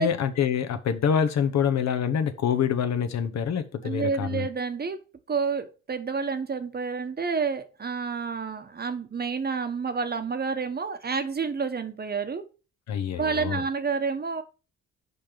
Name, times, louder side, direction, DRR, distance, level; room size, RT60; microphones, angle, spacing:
voice 1, 0.0-4.5 12.9-13.6, left 8 dB, 65° left, 1.2 m, -26 dB
voice 2, 3.8-5.0 5.3-12.4 13.2-14.4, right 5 dB, 30° right, 1.1 m, -29 dB
5.6 x 5.2 x 5.9 m
cardioid pair, 90°, 30 cm